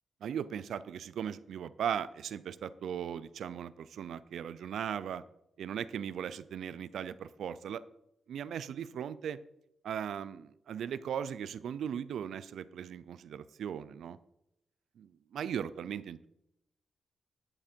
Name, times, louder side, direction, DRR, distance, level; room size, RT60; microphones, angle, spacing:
voice 1, 0.2-5.2 5.6-7.8 8.3-9.4 9.8-14.2 15.0-16.3, right 8 dB, 85° right, 16 dB, 0.5 m, -38 dB
10.0 x 8.7 x 4.5 m, 0.82 s
cardioid pair, 110°, 0 cm